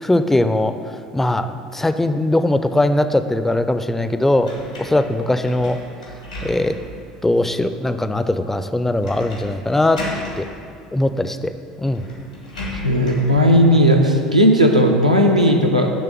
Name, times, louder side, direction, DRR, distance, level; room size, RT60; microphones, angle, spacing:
voice 1, 0.0-0.8 1.1-4.5 4.8-5.8 6.4-6.8 7.2-10.0 10.4-10.5 10.9-11.5 11.8-12.1, left 1 dB, 10° left, 10 dB, 0.4 m, -20 dB
sound 1, 4.4-7.0 7.5-7.6 9.0-9.5 9.8-10.4 11.4-11.5 11.8-13.3, left 1 dB, 80° left, 1.4 m, -34 dB
voice 2, 12.7-15.9, equal, 90° right, 1 dB, 0.6 m, -15 dB
10.0 x 3.4 x 5.8 m, 2.4 s
figure-of-eight pair, 70°, 4 cm